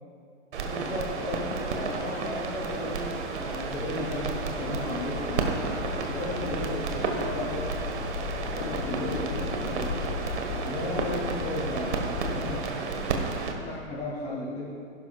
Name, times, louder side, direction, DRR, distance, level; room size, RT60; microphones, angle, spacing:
sound 1, 0.5-13.5, right 4 dB, 65° right, 1.6 m, -32 dB
voice 1, 0.6-3.1 3.4-5.8 6.1-7.6 8.5-9.9 10.7-13.0 13.5-14.7, left 2 dB, 15° left, -10 dB, 3.1 m, -35 dB
sound 2, 2.8-12.7, left 6 dB, 70° left, 1.1 m, -37 dB
16.0 x 11.5 x 2.5 m, 2.3 s
hypercardioid pair, 125°, 36 cm